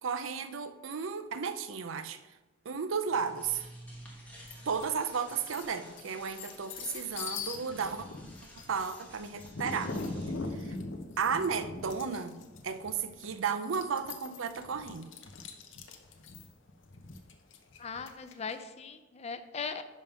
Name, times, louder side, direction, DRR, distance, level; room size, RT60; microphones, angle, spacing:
voice 1, 0.0-2.2 2.7-3.6 4.7-8.1 8.7-9.9 10.5-10.7 11.2-12.4 12.6-15.1, right 6 dB, 75° right, 11 dB, 0.5 m, -34 dB
sound 1, 3.0-10.5, equal, 5° left, 1.3 m, -52 dB
sound 2, 4.5-4.9 5.3-18.5, left 3 dB, 65° left, 0.8 m, -41 dB
voice 2, 17.8-19.8, left 5 dB, 30° left, 9 dB, 0.5 m, -39 dB
10.5 x 3.6 x 5.4 m, 1.1 s
head